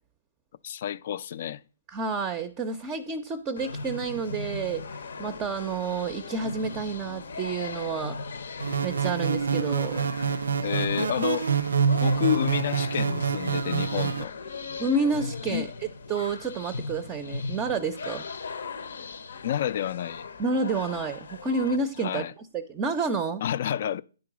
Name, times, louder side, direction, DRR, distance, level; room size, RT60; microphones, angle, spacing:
voice 1, 0.6-1.6 10.6-11.5 12.0-14.3 15.5-15.7 19.4-20.3 22.0-22.3 23.4-24.0, left 10 dB, 50° left, 0.4 m, -29 dB
voice 2, 1.9-8.2 8.8-10.0 14.8-18.2 20.4-23.4, right 4 dB, 20° right, 0.5 m, -30 dB
sound 1, 3.6-21.8, left 4 dB, 75° left, 0.7 m, -38 dB
sound 2, 8.6-14.2, right 6 dB, 75° right, 0.3 m, -26 dB
9.6 x 3.8 x 6.0 m
hypercardioid pair, 145°, 0 cm